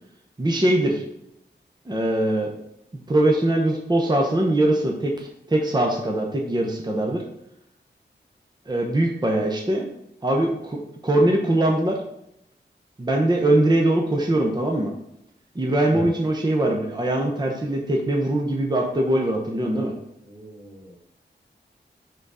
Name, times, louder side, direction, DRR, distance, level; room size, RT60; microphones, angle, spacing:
voice 1, 0.4-1.0 1.9-2.5 3.1-7.2 8.7-9.9 10.2-12.0 13.0-14.9 15.5-19.9, right 1 dB, 25° right, 1 dB, 0.8 m, -22 dB
voice 2, 20.3-21.0, right 1 dB, 85° right, -6 dB, 1.8 m, -36 dB
5.0 x 3.9 x 4.9 m, 0.78 s
wide cardioid pair, 95°, 19 cm